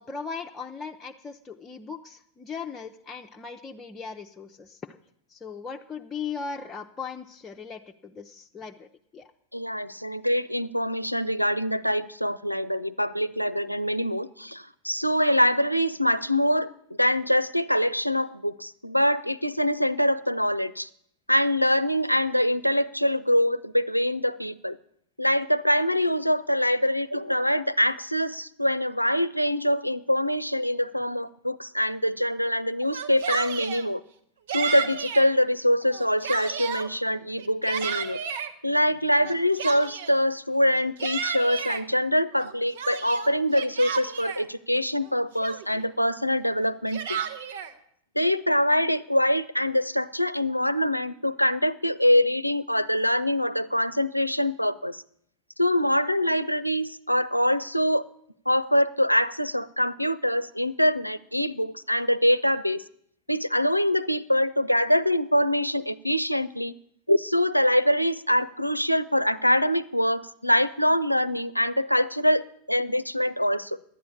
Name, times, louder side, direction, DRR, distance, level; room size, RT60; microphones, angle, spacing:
voice 1, 0.0-5.0 5.3-8.9 9.1-9.3, left 5 dB, 15° left, 2 dB, 0.6 m, -38 dB
voice 2, 9.5-16.7 17.0-20.9 21.3-24.8 25.2-34.0 34.5-38.2 38.6-47.2 48.2-55.0 55.6-58.0 58.5-62.8 63.3-66.7 67.1-72.4 72.7-73.8, equal, 90° left, 15 dB, 0.4 m, -24 dB
Yell, 32.8-33.9 34.5-35.3 35.8-36.9 37.4-38.5 39.2-40.2 40.7-41.8 42.4-44.4 45.0-45.1 45.4-45.9 46.6-47.7, right 7 dB, 60° right, 1.0 m, -33 dB
11.5 x 9.6 x 8.4 m, 0.71 s
figure-of-eight pair, 90°, 0 cm